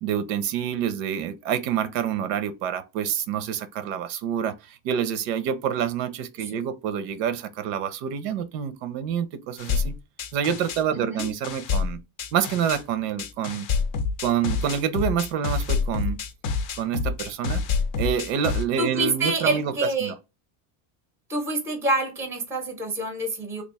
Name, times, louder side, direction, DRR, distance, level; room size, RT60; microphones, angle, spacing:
voice 1, 0.0-9.9 10.3-12.0 12.3-13.7 14.2-16.2 16.8-17.6 18.0-19.7 20.0-20.2, right 8 dB, 90° right, 0.8 m, -27 dB
sound 1, 9.6-10.8 11.2-12.8 13.2-18.6, left 5 dB, 45° left, 0.5 m, -27 dB
voice 2, 10.9-11.3 18.8-20.1 21.3-23.6, right 2 dB, 5° right, 0.6 m, -27 dB
3.1 x 2.5 x 3.5 m
cardioid pair, 175°, 47 cm